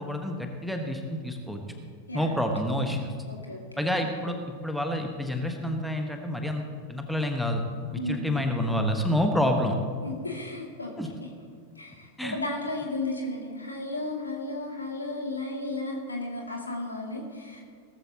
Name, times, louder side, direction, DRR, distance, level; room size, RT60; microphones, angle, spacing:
voice 1, 0.0-1.6 2.1-3.1 3.8-4.4 4.6-6.6 6.9-7.6 8.1-9.8 11.0-11.1 12.2-12.4, left 1 dB, ahead, 4 dB, 1.4 m, -28 dB
voice 2, 3.3-3.6 8.0-8.4 10.0-10.9 11.8-17.6, left 2 dB, 80° left, 0 dB, 2.5 m, -34 dB
18.0 x 14.0 x 3.0 m, 2.1 s
figure-of-eight pair, 90°, 0 cm